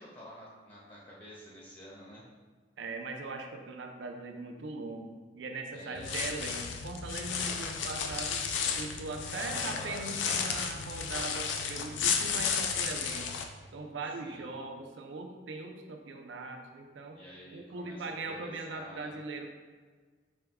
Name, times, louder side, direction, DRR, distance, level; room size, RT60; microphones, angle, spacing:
voice 1, 0.0-2.3 5.7-6.3 9.3-10.6 14.2-14.5 17.1-19.2, left 1 dB, 30° left, -6 dB, 0.7 m, -48 dB
voice 2, 2.8-8.4 8.7-13.3 13.7-17.2 17.5-19.5, right 3 dB, 85° right, 4 dB, 0.5 m, -40 dB
sound 1, 6.0-13.4, left 6 dB, 85° left, 0.4 m, -33 dB
4.3 x 2.3 x 3.4 m, 1.5 s
head